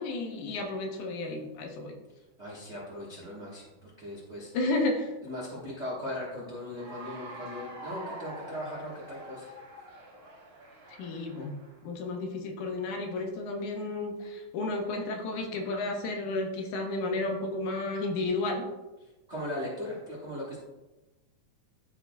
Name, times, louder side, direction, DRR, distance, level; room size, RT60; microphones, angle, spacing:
voice 1, 0.0-2.0 4.5-5.1 11.0-11.5 11.8-18.7, left 2 dB, 75° left, 2 dB, 2.4 m, -32 dB
voice 2, 2.4-4.5 5.2-9.5 19.3-20.6, left 1 dB, 80° right, -5 dB, 0.6 m, -38 dB
Cheering / Applause, 6.7-11.8, right 1 dB, 45° right, 1.8 m, -45 dB
12.0 x 4.5 x 2.2 m, 1.1 s
omnidirectional pair, 3.7 m